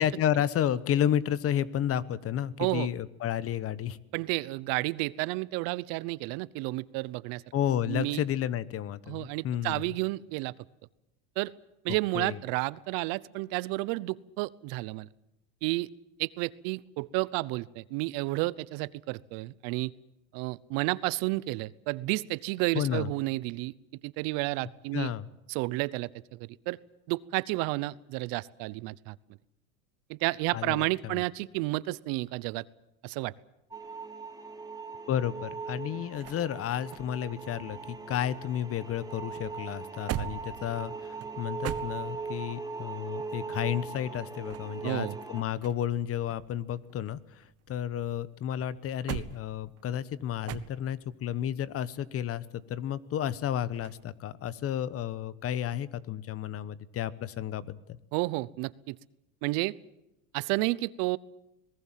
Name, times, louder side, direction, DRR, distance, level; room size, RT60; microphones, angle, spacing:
voice 1, 0.0-4.0 7.5-9.9 12.1-12.4 22.7-23.1 24.9-25.3 30.5-31.2 35.1-58.0, left 10 dB, 35° left, 18 dB, 1.1 m, -32 dB
voice 2, 4.1-7.4 7.9-8.2 9.1-10.5 11.4-11.5 11.8-15.1 15.6-15.9 16.2-19.9 20.3-23.7 24.0-25.1 25.5-26.8 27.1-29.2 30.1-32.6 33.0-33.3 44.8-45.2 58.1-59.0 59.4-59.7 60.3-61.2, right 21 dB, 60° right, 20 dB, 0.9 m, -31 dB
sound 1, 33.7-45.4, right 4 dB, 10° right, 2.4 m, -40 dB
sound 2, 35.4-38.6 38.9-42.5 44.2-46.0 46.3-48.0 48.5-51.1 53.7-54.1, right 12 dB, 35° right, 1.3 m, -42 dB
26.5 x 19.0 x 7.5 m, 0.89 s
supercardioid pair, 130°, 40 cm